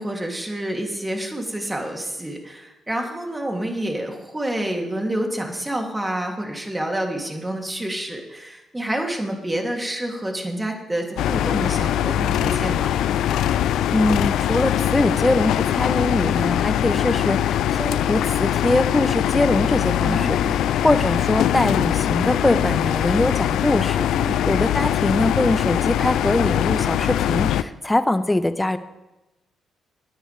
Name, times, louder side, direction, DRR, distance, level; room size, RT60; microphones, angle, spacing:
voice 1, 0.0-13.0 20.0-20.6 24.1-24.4, right 1 dB, 15° right, 2 dB, 2.9 m, -28 dB
sound 1, 11.2-27.6, left 11 dB, 70° left, 0.4 m, -22 dB
voice 2, 13.9-20.6 20.8-28.8, left 1 dB, 15° left, 11 dB, 1.0 m, -22 dB
19.0 x 10.0 x 3.4 m, 0.99 s
hypercardioid pair, 45°, 0 cm